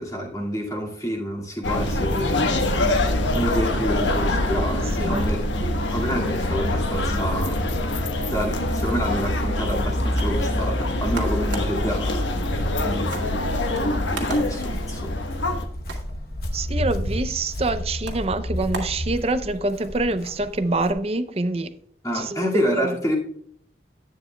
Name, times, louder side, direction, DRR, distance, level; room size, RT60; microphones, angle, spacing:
voice 1, 0.0-2.5 3.3-5.4 5.9-7.6 8.3-13.3 14.1-15.2 22.0-23.1, equal, 20° left, 2.1 m, -28 dB
sound 1, 1.6-15.7, left 1 dB, 90° left, 1.2 m, -24 dB
sound 2, 10.2-19.7, right 2 dB, 90° right, 2.0 m, -40 dB
Walk footsteps, 13.9-20.9, equal, 55° left, 1.0 m, -32 dB
voice 2, 16.5-21.7 22.1-22.9, right 2 dB, 35° right, 0.5 m, -26 dB
11.0 x 9.3 x 2.2 m
head